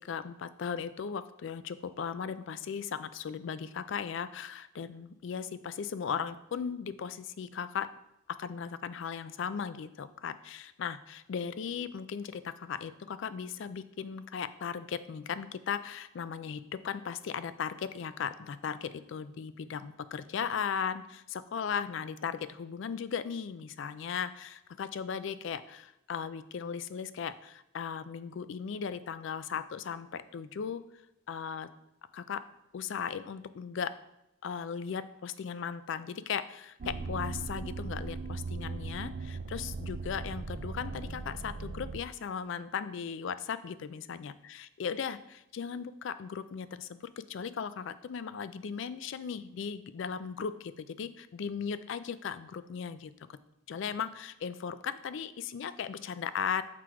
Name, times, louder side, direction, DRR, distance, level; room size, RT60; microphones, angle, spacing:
voice 1, 0.0-7.9 8.4-30.8 31.3-31.7 32.1-32.4 32.7-33.9 34.4-44.3 44.8-47.0 47.3-53.4 53.7-56.6, left 7 dB, 55° left, 14 dB, 0.3 m, -37 dB
sound 1, 36.8-42.0, right 3 dB, 40° right, 0.3 m, -38 dB
6.0 x 4.5 x 4.7 m, 0.84 s
head